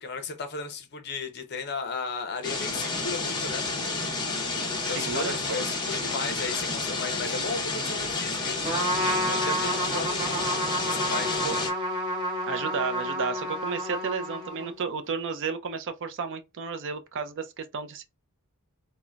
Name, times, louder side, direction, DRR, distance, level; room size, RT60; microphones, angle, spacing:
voice 1, 0.0-3.6 4.7-8.6 9.1-10.3 10.8-11.4, left 4 dB, 50° left, 0.7 m, -35 dB
sound 1, 2.4-11.7, left 3 dB, 20° left, 0.8 m, -30 dB
voice 2, 4.9-5.7 11.4-11.6 12.5-18.0, right 5 dB, 55° right, 0.4 m, -32 dB
Trumpet, 8.6-14.8, equal, 20° right, 1.0 m, -30 dB
3.8 x 2.2 x 2.2 m
head